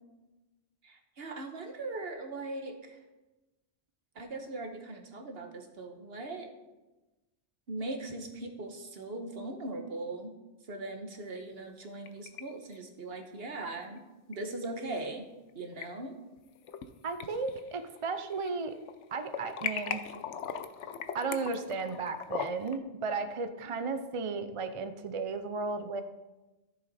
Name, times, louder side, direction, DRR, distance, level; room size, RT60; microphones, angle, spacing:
voice 1, 0.8-3.0 4.1-6.5 7.7-10.3 10.7-15.3 15.5-16.2, right 2 dB, 60° right, 5 dB, 1.4 m, -40 dB
sound 1, 11.7-12.4 12.7-12.8 14.3-14.4 15.5-15.9 16.4-16.9 17.2-18.5 18.8-22.8, left 7 dB, 85° left, 1.0 m, -39 dB
voice 2, 17.0-18.8 19.1-20.0 21.1-26.0, right 4 dB, 40° right, 9 dB, 0.5 m, -34 dB
14.0 x 6.8 x 4.2 m, 1.1 s
omnidirectional pair, 1.2 m